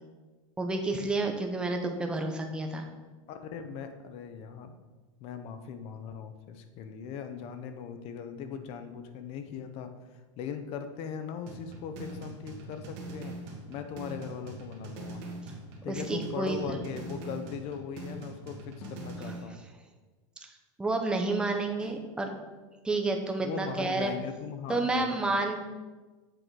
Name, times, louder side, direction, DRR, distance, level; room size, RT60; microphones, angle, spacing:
voice 1, 0.6-2.9 15.9-16.6 19.3-19.4 20.8-22.4 22.8-24.1 24.7-25.6, right 2 dB, 5° right, 3 dB, 0.6 m, -30 dB
voice 2, 3.3-4.8 5.2-9.9 10.4-13.3 13.7-15.2 15.8-19.6 23.4-25.2, left 7 dB, 35° left, 8 dB, 0.6 m, -39 dB
sound 1, 11.5-19.5, right 2 dB, 45° right, 1.5 m, -42 dB
sound 2, 18.8-19.1 21.8-22.1 24.7-25.0, left 3 dB, 75° left, 1.5 m, -46 dB
7.8 x 3.8 x 4.6 m, 1.3 s
supercardioid pair, 155°, 17 cm